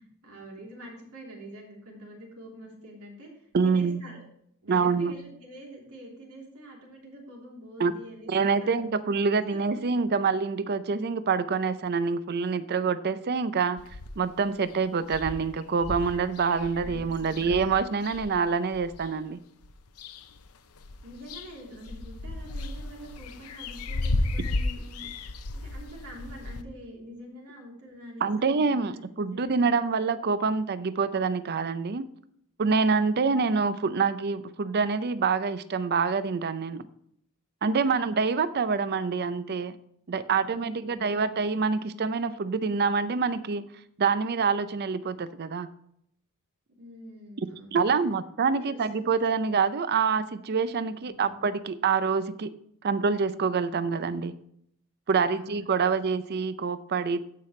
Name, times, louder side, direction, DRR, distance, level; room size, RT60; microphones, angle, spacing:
voice 1, 0.0-4.2 4.6-8.8 9.4-9.8 21.0-25.2 25.5-29.6 37.8-38.1 40.4-41.2 46.8-48.2 48.6-49.2 51.0-51.4 55.3-55.6 55.9-56.0, right 1 dB, 80° right, -2 dB, 3.3 m, -46 dB
voice 2, 3.5-4.0 4.7-5.1 7.8-7.9 8.3-13.8 14.2-19.4 28.2-32.1 32.6-36.9 37.6-39.8 40.1-43.6 44.0-45.7 47.7-52.5 52.8-54.3 55.1-57.3, right 5 dB, 45° right, 14 dB, 0.5 m, -26 dB
sound 1, 13.8-14.4 14.7-14.8 15.0-19.1 19.6-20.5 20.8-26.6, left 2 dB, 90° left, 0.7 m, -34 dB
16.0 x 5.8 x 3.2 m, 0.70 s
head